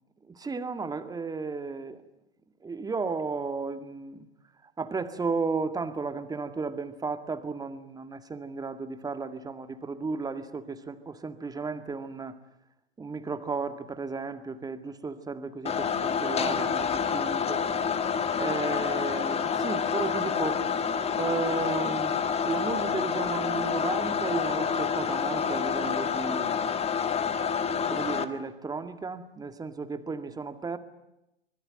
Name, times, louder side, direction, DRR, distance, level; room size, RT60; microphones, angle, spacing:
voice 1, 0.3-2.0 2.6-4.3 4.8-12.3 13.0-17.7 18.4-20.7 21.1-22.2 22.5-27.3 27.9-30.8, right 4 dB, 10° right, 10 dB, 2.1 m, -34 dB
sound 1, 15.7-28.2, left 6 dB, 20° left, 1.8 m, -28 dB
25.5 x 21.5 x 9.1 m, 0.89 s
hypercardioid pair, 100°, 30 cm